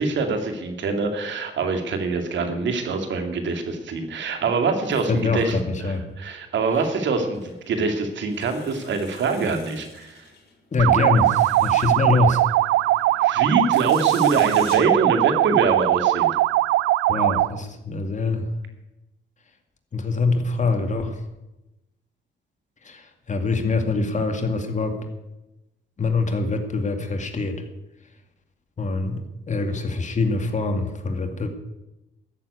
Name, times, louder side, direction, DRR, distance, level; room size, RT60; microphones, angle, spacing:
voice 1, 0.0-10.2 13.2-16.3, right 4 dB, 65° right, 5 dB, 2.4 m, -24 dB
voice 2, 5.1-6.0 10.7-12.4 17.1-18.5 19.9-21.2 22.8-25.0 26.0-27.6 28.8-29.2 29.5-31.5, left 3 dB, 35° left, 5 dB, 2.3 m, -24 dB
sound 1, 7.3-16.0, left 5 dB, 50° left, 4.1 m, -46 dB
sound 2, 10.8-17.6, right 16 dB, 90° right, 0.4 m, -20 dB
14.0 x 7.6 x 9.5 m, 0.98 s
cardioid pair, 90°, 20 cm